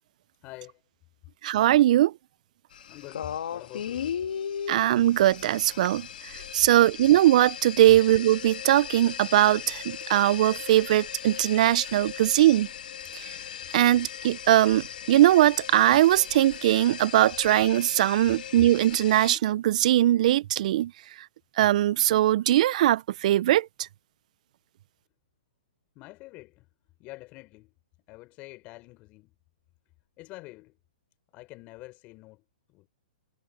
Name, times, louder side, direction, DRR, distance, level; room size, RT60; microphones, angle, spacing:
voice 1, 0.4-0.8 2.9-4.1 26.0-26.7 27.0-27.7 28.1-29.3 30.2-30.8 31.3-32.4 32.7-32.9, left 21 dB, 30° left, 5.3 m, -46 dB
voice 2, 1.4-2.1 4.7-6.1 6.5-12.7 13.1-13.2 13.7-20.9 21.6-23.7, right 13 dB, 50° right, 0.6 m, -21 dB
sound 1, 2.7-19.4, left 9 dB, 70° left, 2.0 m, -38 dB
hypercardioid pair, 140°, 5 cm